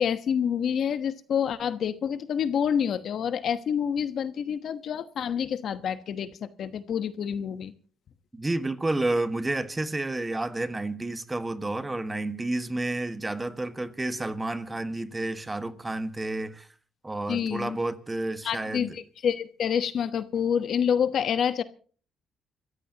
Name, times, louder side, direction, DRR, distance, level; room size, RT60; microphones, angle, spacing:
voice 1, 0.0-7.7 17.3-17.8 18.4-21.6, left 8 dB, 65° left, 1.1 m, -28 dB
voice 2, 8.3-16.7 17.0-19.0, right 2 dB, 15° right, 1.5 m, -30 dB
28.5 x 14.5 x 2.9 m
cardioid pair, 90°, 0 cm